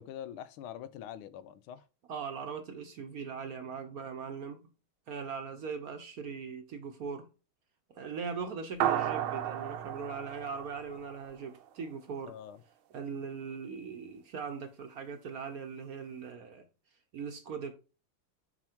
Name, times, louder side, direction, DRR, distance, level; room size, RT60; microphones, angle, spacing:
voice 1, 0.0-1.9 12.3-12.6, left 10 dB, 90° left, 1.5 m, -44 dB
voice 2, 2.1-4.6 5.1-7.3 8.0-12.3 12.9-16.7 17.1-17.8, right 5 dB, 60° right, 1.0 m, -40 dB
sound 1, 8.8-11.5, right 11 dB, 80° right, 1.6 m, -33 dB
7.0 x 5.7 x 4.4 m
omnidirectional pair, 2.3 m